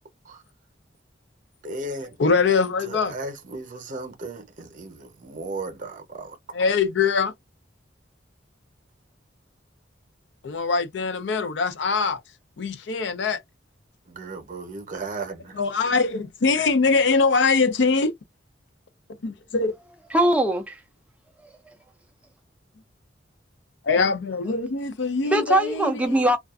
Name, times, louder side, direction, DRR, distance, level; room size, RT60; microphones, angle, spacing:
voice 1, 1.6-2.2 2.9-6.4 14.1-15.6, right 2 dB, 45° right, 0.7 m, -35 dB
voice 2, 2.2-3.1 6.5-7.3 10.4-12.2 12.6-13.4 15.5-18.1 19.2-19.8 23.8-26.3, left 4 dB, 70° left, 0.5 m, -23 dB
voice 3, 20.1-20.8 21.7-21.8 25.2-26.4, right 1 dB, 5° right, 0.3 m, -21 dB
2.3 x 2.2 x 2.3 m
head